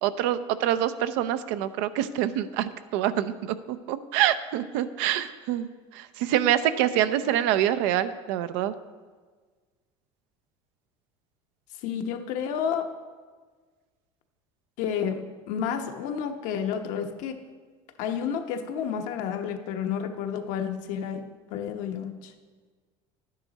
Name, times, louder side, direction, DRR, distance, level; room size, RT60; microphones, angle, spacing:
voice 1, 0.0-5.7 5.9-8.7, right 11 dB, 80° right, 11 dB, 0.6 m, -26 dB
voice 2, 11.8-12.9 14.8-17.4 18.0-21.2 21.5-22.3, left 7 dB, 65° left, 6 dB, 1.0 m, -30 dB
11.0 x 9.4 x 4.1 m, 1.5 s
cardioid pair, 125°, 14 cm